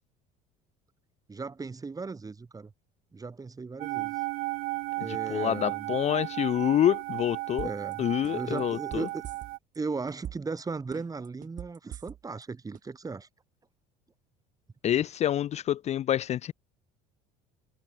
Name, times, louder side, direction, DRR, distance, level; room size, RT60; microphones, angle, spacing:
voice 1, 1.3-2.7 3.1-4.2 5.0-5.9 7.6-8.1 8.3-9.2 9.8-13.3, right 4 dB, 20° right, 7.2 m, -37 dB
sound 1, 3.8-9.6, right 23 dB, 75° right, 1.6 m, -34 dB
voice 2, 5.3-7.7 8.0-9.1 14.8-16.5, left 11 dB, 40° left, 0.5 m, -27 dB
sound 2, 7.6-7.9 8.2-9.8 10.1-10.6 10.9-12.4 12.7-12.8, right 11 dB, 50° right, 4.6 m, -41 dB
supercardioid pair, 105°, 17 cm